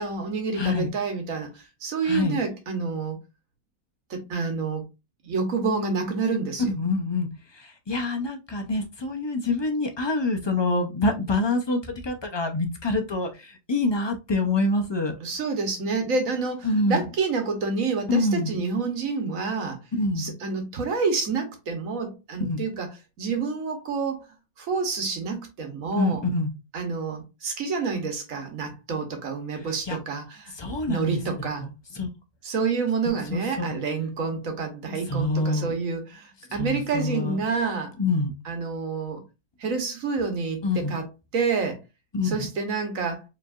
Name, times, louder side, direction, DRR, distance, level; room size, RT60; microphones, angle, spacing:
voice 1, 0.0-3.2 4.1-4.8 5.2-6.6 15.2-19.8 20.2-22.9 23.2-24.3 24.6-26.2 26.7-30.5 30.9-31.6 32.4-37.9 38.5-39.2 39.6-41.0 41.3-41.8 42.2-43.2, right 4 dB, 65° right, 1.5 m, -28 dB
voice 2, 0.5-0.9 2.0-2.4 6.7-15.2 16.6-17.1 18.1-18.6 19.9-20.3 22.4-22.6 25.9-26.5 29.5-30.0 30.5-31.2 31.6-32.1 33.1-33.7 35.1-35.7 36.5-37.4 38.0-38.3 40.6-41.0 42.1-42.5, left 2 dB, 30° left, 0.5 m, -26 dB
4.7 x 3.3 x 2.5 m
omnidirectional pair, 1.6 m